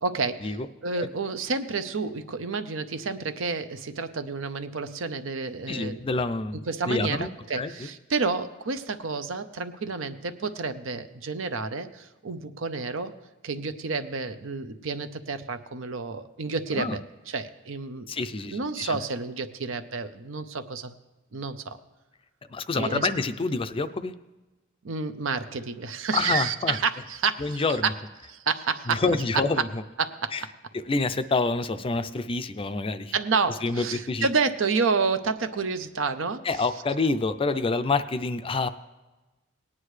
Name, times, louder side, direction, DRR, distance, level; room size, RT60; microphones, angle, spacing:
voice 1, 0.0-0.6 0.8-6.0 6.7-13.1 13.4-18.1 18.5-20.9 21.3-21.8 22.7-23.1 24.8-27.9 28.3-29.0 30.0-30.4 33.1-36.5, right 4 dB, 75° right, 9 dB, 0.7 m, -29 dB
voice 2, 5.7-7.3 7.6-7.9 16.7-17.0 18.1-19.0 22.5-24.1 26.1-26.8 27.4-27.9 28.9-29.8 30.3-30.4 30.9-33.1 33.6-34.3 36.4-38.7, left 3 dB, 25° left, 11 dB, 0.4 m, -27 dB
18.5 x 9.8 x 3.2 m, 1.1 s
head